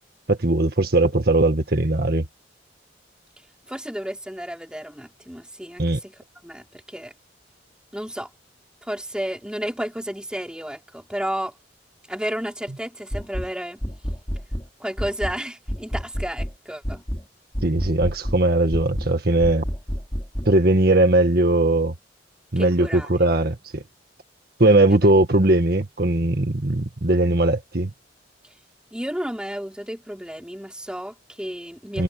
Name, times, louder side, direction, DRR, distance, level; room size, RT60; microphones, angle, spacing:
voice 1, 0.3-2.2 5.8-6.0 17.6-19.6 20.5-21.9 22.5-23.8 24.6-27.9 31.9-32.0, right 2 dB, 60° right, 1.8 m, -19 dB
voice 2, 3.7-7.1 7.9-8.3 8.8-11.5 12.1-13.8 14.8-17.0 22.6-23.1 24.9-25.0 28.9-32.0, equal, 5° right, 4.6 m, -32 dB
sound 1, 13.1-13.5 13.8-14.7 15.0-15.4 15.7-16.5 16.8-17.2 17.5-18.4 18.7-19.1 19.4-20.5, equal, 20° left, 2.8 m, -29 dB
head